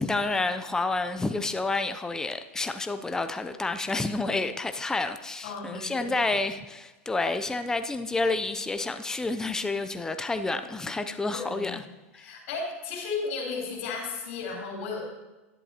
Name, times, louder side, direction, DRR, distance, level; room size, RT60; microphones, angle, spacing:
voice 1, 0.0-11.8 12.1-12.3, left 3 dB, 10° left, 9 dB, 0.5 m, -29 dB
voice 2, 5.4-6.1 11.3-11.8 12.1-15.0, left 4 dB, 70° left, -1 dB, 3.7 m, -34 dB
11.0 x 10.5 x 2.9 m, 1.1 s
hypercardioid pair, 115°, 7 cm